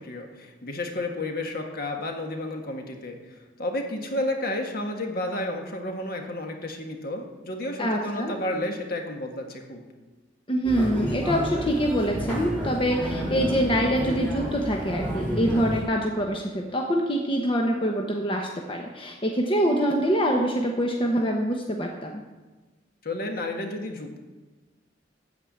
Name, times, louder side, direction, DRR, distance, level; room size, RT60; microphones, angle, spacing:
voice 1, 0.0-9.8 23.0-24.2, left 1 dB, 55° left, 3 dB, 1.7 m, -31 dB
voice 2, 7.8-8.3 10.5-22.1, equal, 30° left, 1 dB, 1.0 m, -25 dB
sound 1, 10.6-15.8, right 1 dB, 10° left, 3.2 m, -30 dB
13.5 x 4.9 x 8.6 m, 1.2 s
head